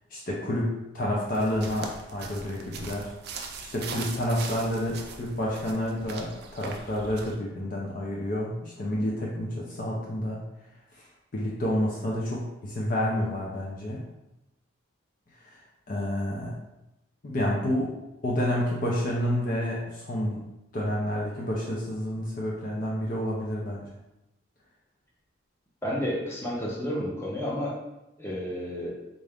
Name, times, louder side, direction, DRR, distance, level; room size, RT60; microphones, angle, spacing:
voice 1, 0.1-3.1 3.6-10.4 11.0-11.1 11.3-14.0 15.4-15.6 15.9-16.5 17.2-17.9 18.2-20.4 20.7-23.9, left 1 dB, 40° left, -4 dB, 0.5 m, -29 dB
sound 1, 1.3-7.4, right 4 dB, 50° right, 0.4 m, -41 dB
voice 2, 25.8-27.8 28.2-28.9, equal, 10° left, -5 dB, 0.7 m, -31 dB
3.6 x 2.5 x 3.4 m, 0.92 s
head